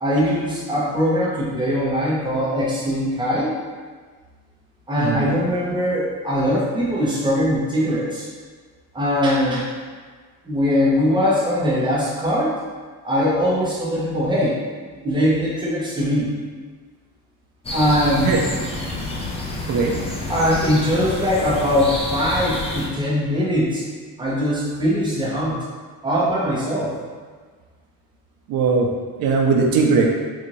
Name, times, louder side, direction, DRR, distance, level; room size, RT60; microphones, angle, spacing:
voice 1, 0.0-3.5 4.9-8.3 8.9-9.7 10.4-12.6 13.0-14.6 15.0-16.3 17.7-18.4 20.3-23.9 24.2-25.6 26.0-27.0, equal, 10° right, -7 dB, 0.9 m, -21 dB
voice 2, 5.0-5.4 18.3-18.4 19.7-19.9 28.5-28.9 29.2-30.1, right 4 dB, 80° right, 1 dB, 0.5 m, -19 dB
sound 1, 17.6-22.9, left 2 dB, 15° left, 0.4 m, -28 dB
3.8 x 2.6 x 3.0 m, 1.5 s
cardioid pair, 140°, 36 cm